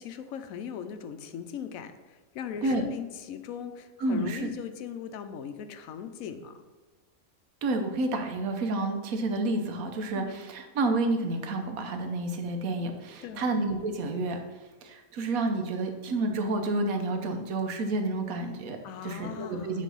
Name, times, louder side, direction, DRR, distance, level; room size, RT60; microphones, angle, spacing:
voice 1, 0.0-6.6 10.1-10.3 13.2-13.5 18.8-19.8, left 8 dB, 85° left, 9 dB, 1.0 m, -39 dB
voice 2, 4.0-4.5 7.6-14.4 14.8-19.8, right 2 dB, 85° right, 5 dB, 1.3 m, -30 dB
8.5 x 3.3 x 5.4 m, 1.3 s
omnidirectional pair, 1.4 m